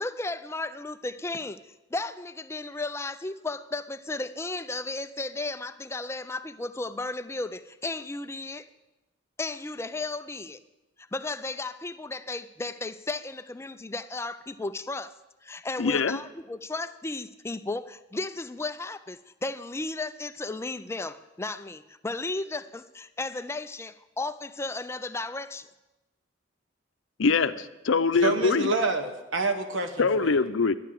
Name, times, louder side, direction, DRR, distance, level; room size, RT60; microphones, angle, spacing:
voice 1, 0.0-1.6 1.9-8.7 9.4-10.6 11.1-15.1 15.4-25.7, left 2 dB, 15° left, 0.4 m, -34 dB
voice 2, 15.8-16.2 27.2-28.7 30.0-30.8, left 4 dB, 80° left, 0.6 m, -23 dB
voice 3, 28.2-30.4, right 3 dB, 85° right, 1.4 m, -27 dB
12.5 x 10.5 x 7.6 m
head